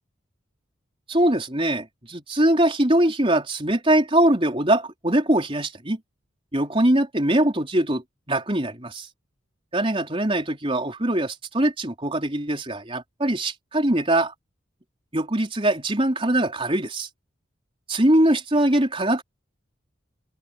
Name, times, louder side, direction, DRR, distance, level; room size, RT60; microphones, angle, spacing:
voice 1, 1.1-6.0 6.5-9.1 9.7-14.3 15.1-17.1 17.9-19.2, right 1 dB, 30° right, 4.2 m, -22 dB
open air
head